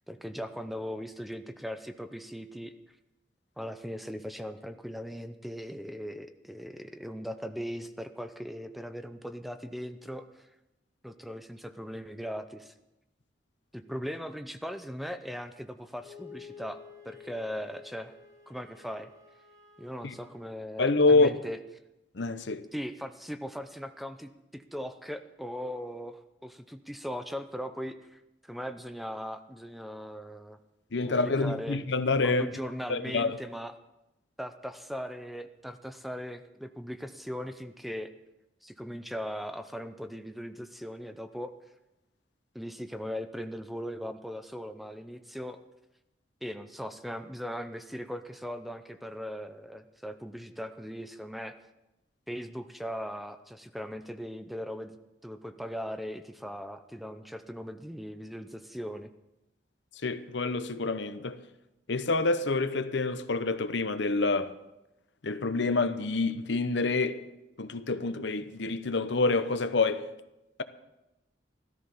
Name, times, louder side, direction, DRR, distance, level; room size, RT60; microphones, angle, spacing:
voice 1, 0.1-2.7 3.6-10.5 11.0-12.7 13.7-16.8 17.0-18.1 18.5-19.1 19.8-21.6 22.7-30.6 31.1-31.8 32.2-33.7 34.4-38.1 38.6-41.5 42.5-45.6 46.4-51.5 52.3-55.0 55.2-59.1, equal, ahead, 0.6 m, -39 dB
Wind instrument woodwind instrument, 16.0-20.4, left 6 dB, 20° right, 3.8 m, -51 dB
voice 2, 20.8-21.4 22.2-22.6 30.9-32.5 32.9-33.4 60.0-61.4 61.9-64.5 65.2-67.2 67.6-70.0, left 3 dB, 70° left, 0.8 m, -27 dB
15.0 x 13.5 x 5.6 m
head